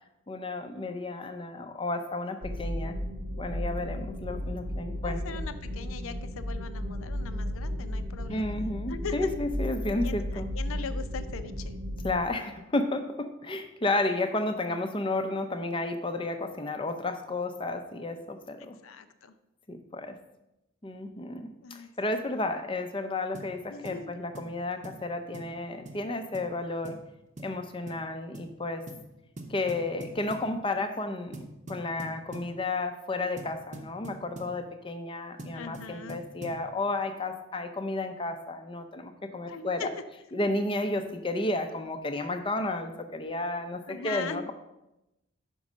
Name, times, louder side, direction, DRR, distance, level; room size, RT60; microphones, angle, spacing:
voice 1, 0.3-2.9 3.4-5.2 8.3-10.5 12.0-18.8 19.7-20.2 20.8-27.0 27.4-28.8 29.5-31.4 31.7-39.9 40.3-44.5, left 2 dB, 25° left, 7 dB, 0.5 m, -32 dB
sound 1, 2.4-12.2, equal, 80° right, 1.0 m, -34 dB
voice 2, 5.0-9.3 10.0-11.7 18.8-19.3 21.6-21.9 23.7-24.2 35.5-36.2 39.5-39.9 43.9-44.4, left 5 dB, 70° left, 10 dB, 0.5 m, -40 dB
sound 2, 23.4-23.6 23.9-24.0 24.4-24.6 24.8-25.0 25.3-25.6 25.9-26.0 26.3-26.5 26.9-27.1 27.4-27.6 27.9-28.0 28.3-28.5 28.9-29.1 29.4-30.5 31.3-32.5 33.4-34.6 35.4-36.6, right 2 dB, 35° right, 0.8 m, -43 dB
5.3 x 5.3 x 6.1 m, 0.92 s
head